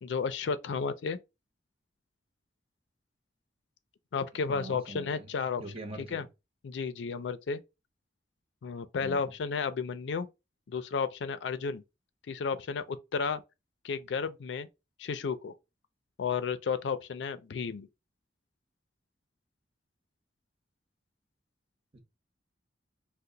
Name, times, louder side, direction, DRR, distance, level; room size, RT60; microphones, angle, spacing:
voice 1, 0.0-1.2 4.1-5.6 6.1-6.2 6.6-7.6 8.6-10.3 10.7-11.8 12.3-13.4 13.8-14.7 15.0-15.5 16.2-17.9, left 5 dB, 75° left, 0.4 m, -32 dB
voice 2, 4.5-5.3 5.6-6.3 9.0-9.3 21.9-22.0, right 2 dB, 35° right, 0.7 m, -43 dB
2.8 x 2.0 x 3.7 m
head